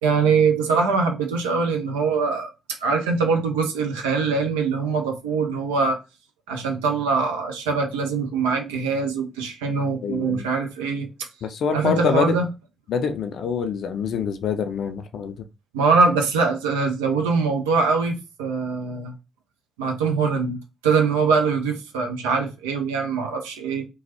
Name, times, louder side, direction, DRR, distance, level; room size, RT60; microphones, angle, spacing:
voice 1, 0.0-2.5 2.8-6.0 6.5-11.1 11.7-12.5 15.7-19.1 19.8-20.6 20.8-23.9, right 4 dB, 80° right, 0.6 m, -23 dB
voice 2, 10.0-10.5 11.4-12.4 12.9-15.5, left 6 dB, 60° left, 0.5 m, -25 dB
3.1 x 2.3 x 2.8 m
figure-of-eight pair, 40°, 0 cm